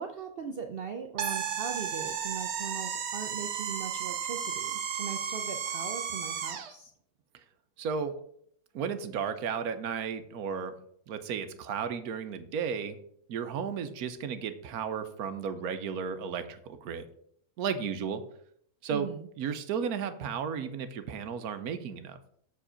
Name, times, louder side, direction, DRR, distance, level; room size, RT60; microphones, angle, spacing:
voice 1, 0.0-6.9 18.9-19.3, right 7 dB, 90° right, 4 dB, 0.5 m, -39 dB
sound 1, 1.2-6.7, right 7 dB, 55° right, 0.8 m, -34 dB
voice 2, 7.8-8.1 8.7-10.7 11.1-13.0 13.3-17.1 17.6-18.2 18.8-19.1 19.4-22.2, right 6 dB, 70° right, 10 dB, 1.2 m, -34 dB
7.1 x 4.9 x 5.0 m, 0.66 s
omnidirectional pair, 1.7 m